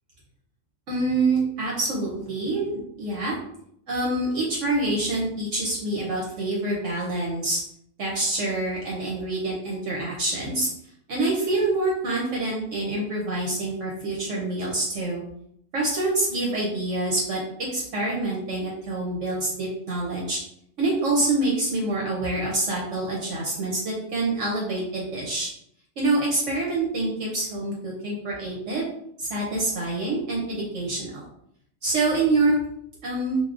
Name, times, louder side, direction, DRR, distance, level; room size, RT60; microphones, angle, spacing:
voice 1, 0.9-2.7 3.0-3.4 3.9-7.6 8.0-10.7 11.1-15.2 15.7-17.4 17.7-20.4 20.8-25.5 26.0-28.8 29.2-31.2 31.8-32.6 33.0-33.4, right 2 dB, 65° right, -3 dB, 1.0 m, -26 dB
3.4 x 2.6 x 2.5 m, 0.72 s
omnidirectional pair, 1.5 m